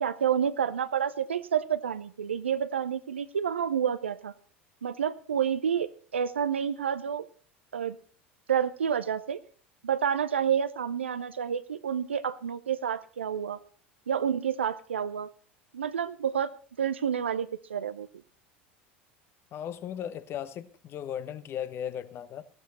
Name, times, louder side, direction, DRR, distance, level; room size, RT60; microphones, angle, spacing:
voice 1, 0.0-4.3 4.8-7.3 7.7-8.0 8.5-9.4 9.8-13.6 14.1-15.3 15.7-16.5 16.8-18.1, right 8 dB, 80° right, 0.7 m, -29 dB
voice 2, 19.5-22.4, left 9 dB, 40° left, 1.1 m, -36 dB
16.0 x 12.5 x 4.2 m
figure-of-eight pair, 75°, 6 cm